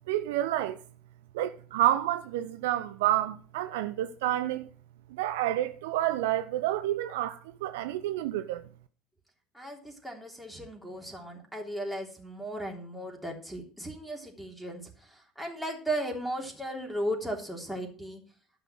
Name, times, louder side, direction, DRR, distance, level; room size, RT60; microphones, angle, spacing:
voice 1, 0.1-0.8 1.3-4.7 5.1-8.6, right 13 dB, 65° right, 0.5 m, -29 dB
voice 2, 9.5-18.2, right 1 dB, ahead, 3.3 m, -36 dB
12.0 x 5.9 x 6.1 m
figure-of-eight pair, 65°, 0 cm